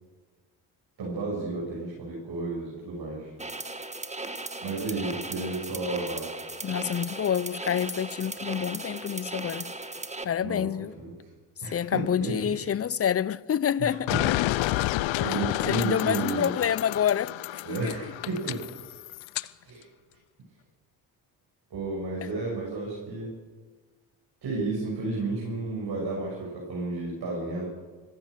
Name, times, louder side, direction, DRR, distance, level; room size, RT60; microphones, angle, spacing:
voice 1, 1.0-3.3 4.6-6.3 10.4-10.7 11.0-11.1 11.6-12.7 13.8-14.2 14.6-16.5 17.6-18.7 19.6-19.8 21.7-23.3 24.4-27.7, right 3 dB, 55° right, 7.9 m, -32 dB
sound 1, 3.4-10.2, right 2 dB, 15° right, 1.8 m, -37 dB
voice 2, 6.6-9.7 10.2-10.9 11.7-14.4 15.2-15.3 15.7-18.0, left 9 dB, 30° left, 0.7 m, -28 dB
sound 2, 14.1-19.5, left 17 dB, 75° left, 0.8 m, -30 dB
26.0 x 15.5 x 6.8 m
supercardioid pair, 65°, 47 cm